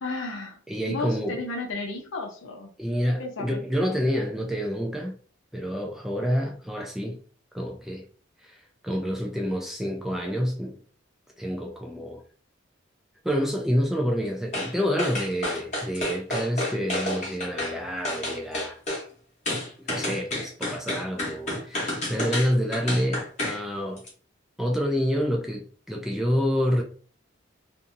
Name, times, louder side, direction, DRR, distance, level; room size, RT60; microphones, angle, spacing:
voice 1, 0.0-0.6 0.9-2.7 3.2-4.0, left 2 dB, 80° left, 0.7 m, -33 dB
voice 2, 0.7-1.4 2.8-5.2 5.5-7.2 7.5-8.0 8.4-10.8 11.4-12.2 13.2-18.8 19.8-24.0 24.6-26.8, equal, ahead, 0.4 m, -28 dB
sound 1, 14.5-14.7 15.0-17.7 18.0-19.0 19.5-23.6 24.0-24.1, left 1 dB, 35° left, 1.0 m, -30 dB
2.7 x 2.6 x 2.5 m
head